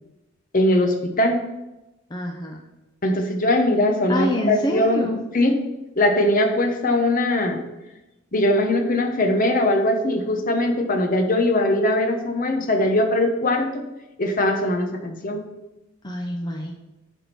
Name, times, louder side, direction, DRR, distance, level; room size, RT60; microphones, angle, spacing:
voice 1, 0.5-1.4 3.0-5.1 5.3-5.6 6.0-7.6 8.3-13.8 14.2-15.5, left 1 dB, 45° left, 5 dB, 1.0 m, -21 dB
voice 2, 2.1-2.7 4.1-5.2 16.0-16.7, equal, 20° left, 1 dB, 0.6 m, -26 dB
10.0 x 3.6 x 6.0 m, 1.0 s
head